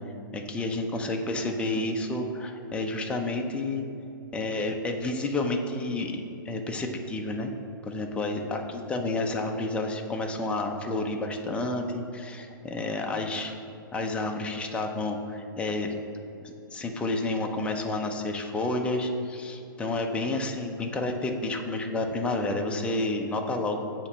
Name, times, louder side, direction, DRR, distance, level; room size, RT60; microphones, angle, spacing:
voice 1, 0.3-3.8 4.3-7.5 7.8-13.5 13.9-15.9 16.4-24.1, left 2 dB, 10° left, 2 dB, 0.5 m, -30 dB
8.3 x 3.0 x 5.5 m, 2.7 s
hypercardioid pair, 135°, 12 cm